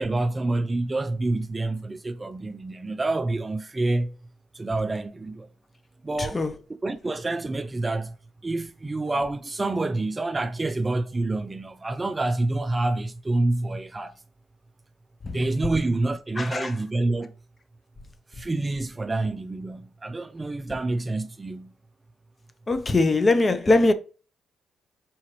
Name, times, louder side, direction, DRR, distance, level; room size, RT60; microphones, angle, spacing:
voice 1, 0.0-4.2 4.5-5.5 6.0-6.4 6.8-8.1 8.4-14.1 15.3-17.3 18.3-21.7, right 2 dB, 20° right, 0.3 m, -27 dB
voice 2, 6.2-6.5 15.2-15.5 16.4-16.8 22.7-23.9, left 2 dB, 25° left, 0.5 m, -22 dB
4.8 x 2.9 x 2.9 m
cardioid pair, 90°, 0 cm